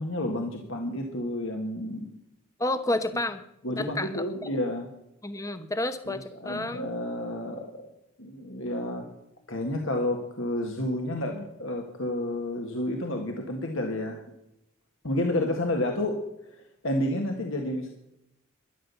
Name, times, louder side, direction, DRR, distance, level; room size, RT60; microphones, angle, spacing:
voice 1, 0.0-2.1 3.1-3.2 3.6-4.9 6.1-7.9 8.2-9.1 9.5-14.2 15.0-16.2 16.4-17.9, left 1 dB, 60° left, 2 dB, 1.8 m, -30 dB
voice 2, 2.6-3.4 3.8-4.2 5.2-6.9, left 1 dB, 15° left, 10 dB, 1.0 m, -30 dB
12.5 x 11.5 x 7.1 m, 0.83 s
head